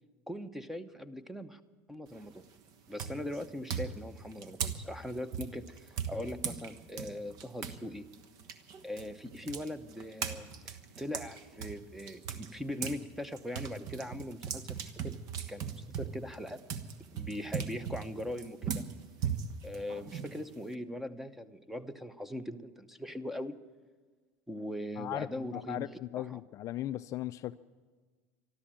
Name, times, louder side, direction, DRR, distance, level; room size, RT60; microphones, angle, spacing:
voice 1, 0.3-1.6 1.9-2.4 2.9-8.1 8.8-15.2 15.5-16.6 17.1-18.8 19.6-23.6 24.5-25.9 26.1-26.4, left 1 dB, 5° right, 13 dB, 0.9 m, -40 dB
sound 1, 2.1-2.4 3.0-7.8 8.1-13.0 13.3-20.7, right 7 dB, 55° right, 1.2 m, -38 dB
voice 2, 25.0-27.6, left 14 dB, 45° left, 13 dB, 0.4 m, -38 dB
13.0 x 13.0 x 8.8 m, 1.4 s
supercardioid pair, 110°, 8 cm